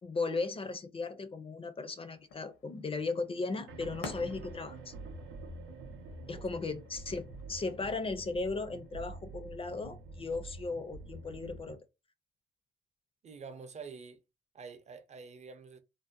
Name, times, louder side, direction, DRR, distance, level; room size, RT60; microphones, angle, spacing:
voice 1, 0.0-4.9 6.3-11.8, left 3 dB, 30° left, 0.4 m, -36 dB
sound 1, 2.1-7.8, left 5 dB, 85° left, 0.7 m, -51 dB
sound 2, 3.7-11.8, right 2 dB, 85° right, 0.6 m, -47 dB
voice 2, 13.2-14.2 14.5-15.8, right 5 dB, 35° right, 0.5 m, -47 dB
2.6 x 2.1 x 2.5 m
cardioid pair, 90°, 20 cm